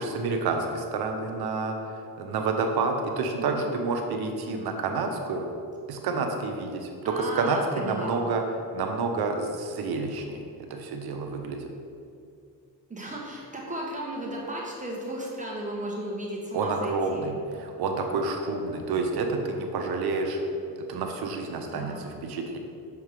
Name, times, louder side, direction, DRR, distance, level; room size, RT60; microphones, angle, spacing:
voice 1, 0.0-1.7 2.2-5.5 5.9-8.4 8.7-10.4 10.7-11.6 16.5-17.3 17.6-20.4 20.9-22.6, right 3 dB, 75° right, 4 dB, 0.8 m, -29 dB
voice 2, 7.0-8.2 12.9-17.3 21.7-22.1, right 1 dB, 20° right, -3 dB, 1.2 m, -35 dB
6.7 x 3.5 x 4.8 m, 2.4 s
cardioid pair, 80°, 38 cm